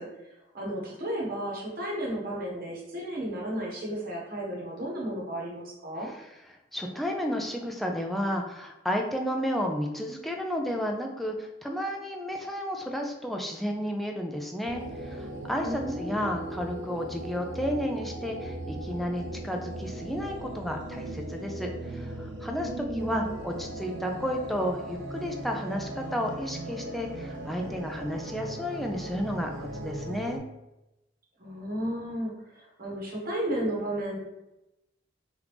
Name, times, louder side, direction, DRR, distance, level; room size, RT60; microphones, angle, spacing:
voice 1, 0.0-6.1 15.6-16.4 22.6-23.4 31.4-34.2, right 1 dB, 55° right, -2 dB, 1.0 m, -33 dB
voice 2, 6.7-30.4, equal, ahead, 1 dB, 0.4 m, -32 dB
sound 1, 14.7-30.4, right 1 dB, 70° right, 0.4 m, -38 dB
3.0 x 2.5 x 3.4 m, 0.92 s
head